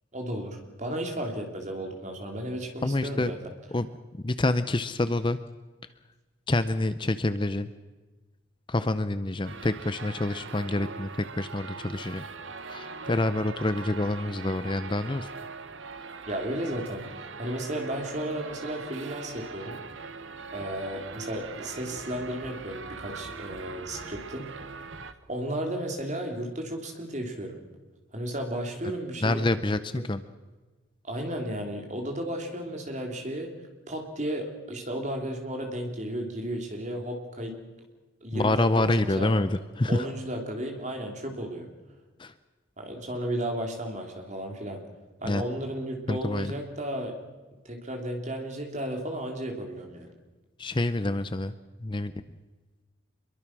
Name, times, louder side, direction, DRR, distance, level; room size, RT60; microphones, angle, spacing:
voice 1, 0.1-3.4 16.3-17.1 17.4-19.8 20.5-24.5 25.3-27.6 28.1-29.5 31.0-33.5 33.9-37.5 38.2-39.3 39.9-41.7 42.8-44.8 45.2-47.1 47.7-50.1, right 1 dB, 35° right, 3 dB, 3.6 m, -34 dB
voice 2, 2.8-3.3 3.7-4.0 4.2-5.4 6.5-7.7 8.7-12.3 12.7-15.3 29.2-30.2 38.3-40.1 42.2-42.3 45.2-45.4 46.1-46.5 50.6-51.5 51.8-52.1, left 2 dB, 25° left, 12 dB, 0.6 m, -27 dB
sound 1, 9.4-25.1, right 4 dB, 70° right, 1.2 m, -41 dB
25.5 x 22.5 x 6.2 m, 1.3 s
head